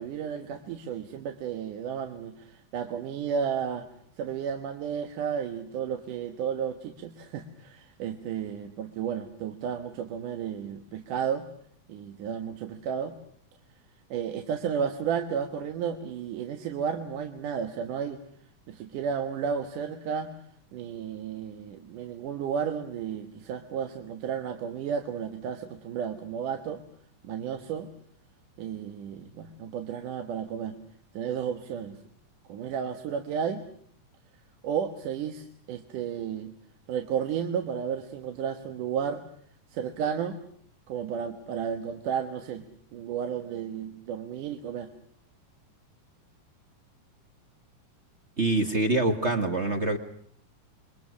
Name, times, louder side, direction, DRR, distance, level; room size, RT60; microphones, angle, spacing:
voice 1, 0.0-3.9 4.2-11.5 11.9-13.1 14.1-18.2 18.7-20.3 20.7-26.8 27.2-27.9 28.6-30.8 31.1-32.0 32.5-33.6 34.6-36.5 36.9-39.2 39.7-40.4 40.9-42.6 42.9-44.9, right 7 dB, 75° right, 6 dB, 2.9 m, -32 dB
voice 2, 48.4-50.0, right 2 dB, 30° right, 6 dB, 1.3 m, -25 dB
29.0 x 23.5 x 6.3 m, 0.63 s
omnidirectional pair, 3.8 m